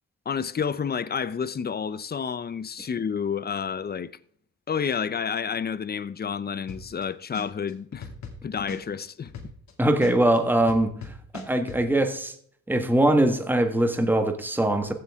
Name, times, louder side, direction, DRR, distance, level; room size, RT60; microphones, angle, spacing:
voice 1, 0.3-4.1 4.7-8.1 8.4-9.3, left 7 dB, 30° left, 0.7 m, -30 dB
sound 1, 6.7-7.0 7.3-9.7 10.0-11.8, left 5 dB, 65° left, 2.5 m, -39 dB
voice 2, 9.8-12.3 12.7-14.9, right 1 dB, 5° right, 1.5 m, -22 dB
15.0 x 7.9 x 3.6 m
cardioid pair, 90°, 30 cm